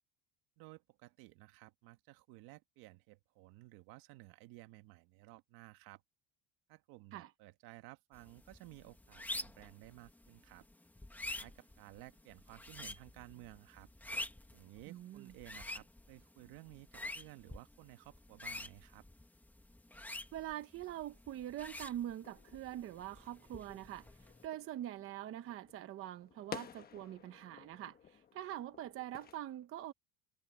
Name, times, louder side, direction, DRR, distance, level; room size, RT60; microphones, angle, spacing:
voice 1, 0.6-6.0 6.7-10.7 11.4-13.9 14.5-19.0, right 19 dB, 70° right, 1.8 m, -56 dB
sound 1, 8.1-24.5, left 1 dB, 5° left, 1.5 m, -48 dB
voice 2, 14.9-15.3 20.3-24.1 24.4-29.9, right 12 dB, 35° right, 0.8 m, -44 dB
sound 2, 22.2-29.4, left 8 dB, 25° left, 1.1 m, -54 dB
cardioid pair, 170°, 37 cm